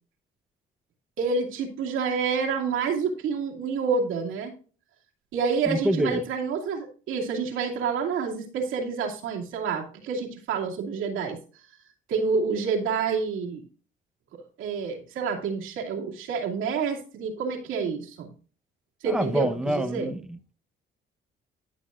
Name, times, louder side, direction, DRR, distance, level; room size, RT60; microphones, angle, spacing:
voice 1, 1.2-4.5 5.3-11.4 12.1-13.6 14.6-18.3 19.0-20.1, right 5 dB, 90° right, 2.5 m, -28 dB
voice 2, 5.7-6.2 19.0-20.2, right 1 dB, 5° right, 0.9 m, -26 dB
12.5 x 7.0 x 2.5 m
cardioid pair, 90°, 20 cm